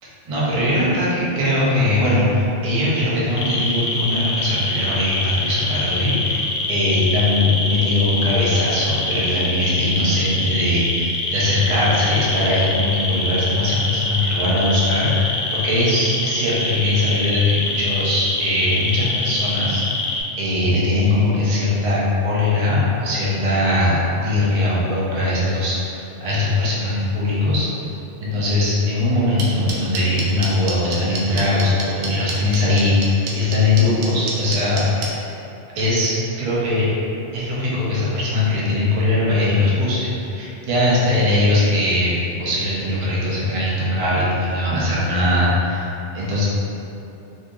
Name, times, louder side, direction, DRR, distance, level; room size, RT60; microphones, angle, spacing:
voice 1, 0.3-20.1 20.4-27.7 28.2-34.8 35.7-36.9 37.3-45.9 46.1-46.4, left 1 dB, 40° right, -7 dB, 0.6 m, -20 dB
sound 1, 3.4-20.2, left 2 dB, 70° left, 0.8 m, -24 dB
sound 2, 29.4-35.1, right 4 dB, 80° right, 0.9 m, -27 dB
2.8 x 2.6 x 3.6 m, 2.9 s
omnidirectional pair, 1.2 m